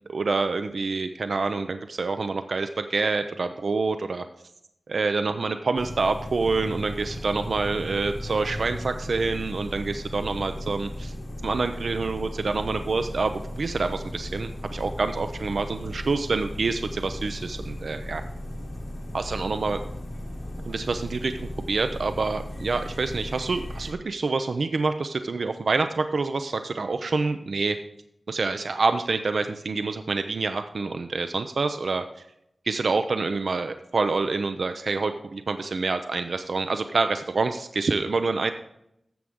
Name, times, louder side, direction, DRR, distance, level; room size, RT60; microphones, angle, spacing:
voice 1, 0.1-4.3 4.9-11.1 11.4-13.3 13.6-18.2 19.1-19.8 20.6-27.8 28.3-32.0 32.7-38.5, right 4 dB, 75° right, 8 dB, 0.5 m, -27 dB
sound 1, 5.8-23.9, left 1 dB, 45° left, 1.0 m, -36 dB
13.0 x 7.5 x 3.6 m, 0.78 s
wide cardioid pair, 85°, 0 cm